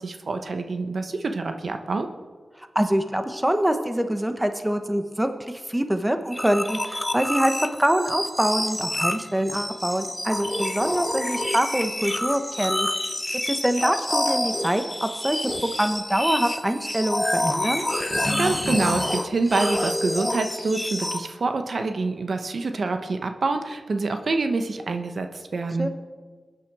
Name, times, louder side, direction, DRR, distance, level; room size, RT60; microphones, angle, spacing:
voice 1, 0.0-2.1 18.3-25.9, right 3 dB, 65° right, 6 dB, 1.1 m, -26 dB
voice 2, 2.6-12.9 13.5-15.4 15.8-17.8 25.8-25.9, right 1 dB, 10° right, 7 dB, 1.0 m, -25 dB
sound 1, 6.3-21.2, left 1 dB, 15° left, 0.9 m, -28 dB
22.5 x 9.3 x 4.8 m, 1.5 s
wide cardioid pair, 95°, 0 cm